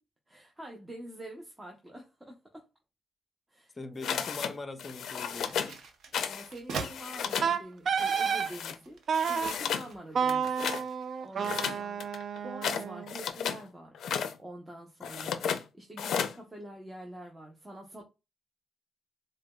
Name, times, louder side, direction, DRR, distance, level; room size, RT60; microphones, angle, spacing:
voice 1, 0.3-2.7 3.5-3.8 6.3-9.0 9.3-10.7 11.2-12.1 12.4-14.0 14.4-18.0, right 1 dB, 15° right, 0.6 m, -46 dB
voice 2, 3.8-5.9 11.4-11.7, left 2 dB, 25° left, 0.5 m, -42 dB
sound 1, 4.0-4.5 4.8-5.7 6.1-6.5 6.7-7.5 8.0-8.8 9.1-9.9 10.2-10.8 11.4-13.6 13.9-14.3 15.0-15.6 16.0-16.4, left 8 dB, 80° left, 0.4 m, -34 dB
sound 2, 5.2-7.0 7.7-10.1 10.4-11.1, right 4 dB, 80° right, 0.7 m, -43 dB
Wind instrument woodwind instrument, 7.4-8.5 9.1-9.5 10.1-13.1, right 6 dB, 55° right, 0.3 m, -30 dB
4.8 x 2.2 x 2.2 m
cardioid pair, 105°, 0 cm